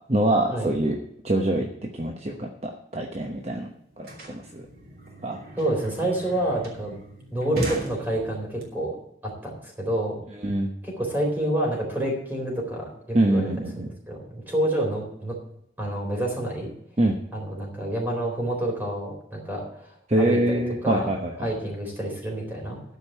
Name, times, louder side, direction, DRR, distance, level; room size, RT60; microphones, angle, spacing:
voice 1, 0.1-1.0 1.2-3.7 4.0-4.7 5.2-5.4 10.4-10.7 13.1-13.9 17.0-17.2 20.1-21.5, right 1 dB, 35° right, 2 dB, 1.0 m, -24 dB
sound 1, 3.4-8.6, equal, 55° right, 2.9 m, -37 dB
voice 2, 5.6-6.9 7.3-9.0 9.2-10.2 10.8-13.5 13.8-15.4 15.8-16.7 17.3-19.7 20.1-21.1 21.4-22.8, right 1 dB, 10° right, -1 dB, 4.0 m, -28 dB
12.5 x 5.3 x 7.9 m, 0.76 s
head